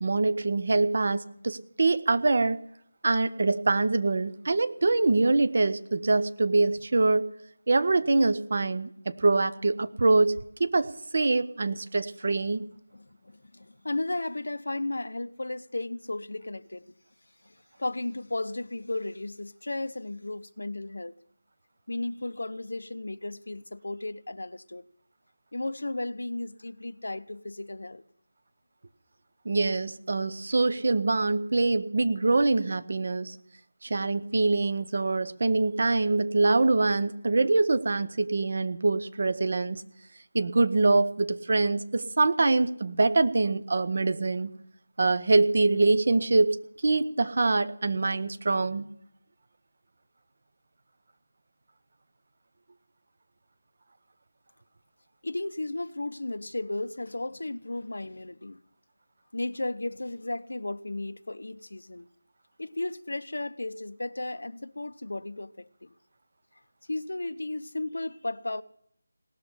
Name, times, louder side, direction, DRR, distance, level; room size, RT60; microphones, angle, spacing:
voice 1, 0.0-2.6 3.0-7.3 7.7-12.6 29.4-33.4 33.8-39.8 40.3-44.5 45.0-46.6 46.8-48.9, right 3 dB, 45° right, 0.8 m, -24 dB
voice 2, 12.9-16.9 17.8-21.1 21.9-24.8 25.5-28.0 55.2-58.6 59.3-62.1 62.6-65.9 66.9-68.6, left 2 dB, 60° left, 0.7 m, -34 dB
18.0 x 6.8 x 9.8 m
figure-of-eight pair, 160°, 0 cm